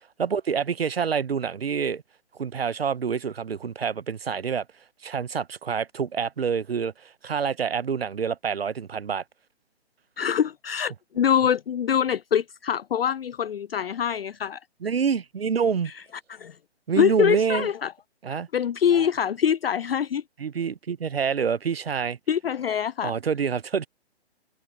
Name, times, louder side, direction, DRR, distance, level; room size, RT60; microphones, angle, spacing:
voice 1, 0.2-2.0 2.4-4.6 5.0-9.2 14.8-15.9 16.9-17.7 18.2-18.5 20.4-22.2 23.0-23.9, right 6 dB, 65° right, 1.0 m, -27 dB
voice 2, 10.2-14.6 15.9-16.0 16.3-16.6 17.0-17.9 18.5-20.2 22.3-23.1, left 8 dB, 60° left, 0.5 m, -24 dB
figure-of-eight pair, 135°, 33 cm